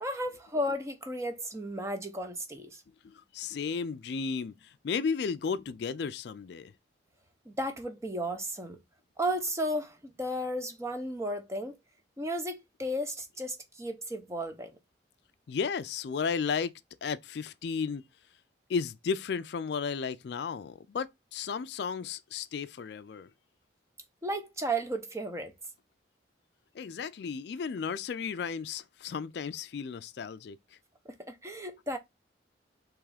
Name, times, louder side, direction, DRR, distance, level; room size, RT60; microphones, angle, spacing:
voice 1, 0.0-2.8 7.5-8.8 9.2-11.8 12.2-14.7 24.2-25.5 31.1-32.0, right 1 dB, 15° right, 0.6 m, -34 dB
voice 2, 3.0-6.7 15.5-16.7 17.0-18.0 18.7-23.3 26.7-30.6, left 5 dB, 60° left, 0.3 m, -34 dB
3.5 x 3.1 x 4.8 m
head